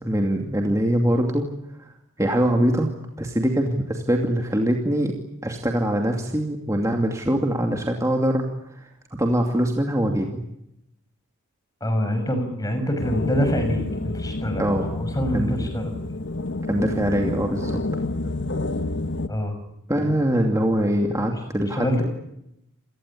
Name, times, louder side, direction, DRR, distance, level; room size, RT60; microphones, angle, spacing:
voice 1, 0.0-1.5 1.8-1.9 2.2-5.1 5.4-8.8 9.2-10.4 14.6-14.9 15.3-15.7 16.7-17.8 19.9-22.0, equal, 15° right, 2 dB, 2.6 m, -23 dB
voice 2, 11.8-15.9 19.3-19.6 19.9-20.1 20.4-20.5 21.3-22.0, equal, 15° left, 7 dB, 6.3 m, -26 dB
sound 1, 13.0-19.3, left 2 dB, 55° left, 1.3 m, -29 dB
28.5 x 18.5 x 9.9 m, 0.83 s
head